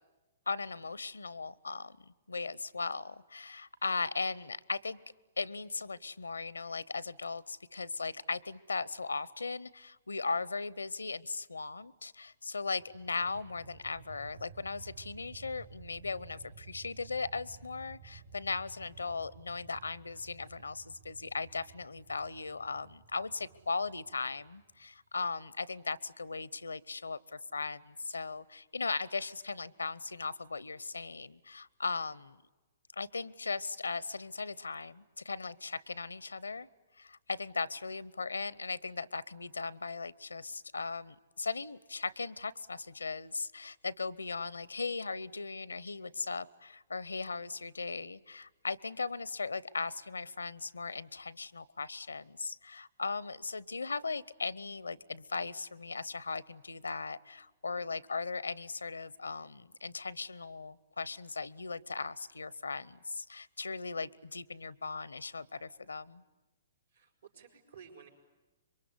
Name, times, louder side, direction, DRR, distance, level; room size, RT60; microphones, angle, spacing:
voice 1, 0.5-5.0 5.4-32.4 33.0-36.7 37.0-66.2, left 4 dB, 85° left, 22 dB, 0.8 m, -38 dB
sound 1, 12.6-24.9, right 7 dB, 65° right, 5.9 m, -55 dB
voice 2, 66.9-68.1, right 6 dB, 80° right, 3 dB, 6.2 m, -54 dB
26.5 x 23.5 x 9.8 m, 1.2 s
figure-of-eight pair, 120°, 0 cm